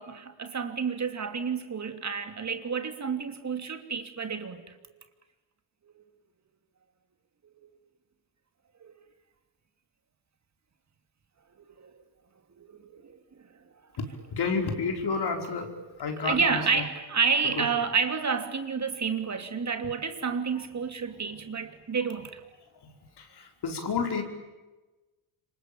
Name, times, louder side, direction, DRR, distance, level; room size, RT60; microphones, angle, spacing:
voice 1, 0.0-4.6 6.0-6.1 7.6-7.7 8.8-9.0 11.6-11.9 12.6-13.2 16.1-22.4, right 5 dB, 35° right, 3.0 m, -30 dB
voice 2, 14.0-15.7 16.0-16.6 23.4-24.2, left 4 dB, 55° left, 5.1 m, -30 dB
27.0 x 24.5 x 8.9 m
supercardioid pair, 80°, 47 cm